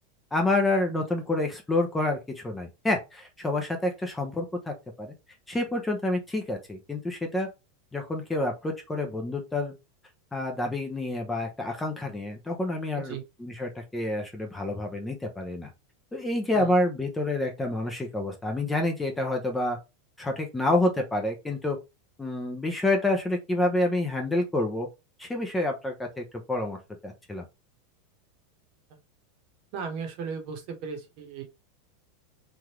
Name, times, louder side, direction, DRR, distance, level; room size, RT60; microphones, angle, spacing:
voice 1, 0.3-5.1 5.5-7.5 7.9-9.7 10.3-15.7 16.1-19.8 20.2-21.8 22.2-24.9 25.2-27.4, left 2 dB, 10° left, 0.5 m, -28 dB
voice 2, 29.7-31.4, right 6 dB, 50° right, 0.9 m, -36 dB
3.3 x 2.4 x 2.9 m
supercardioid pair, 155°, 0 cm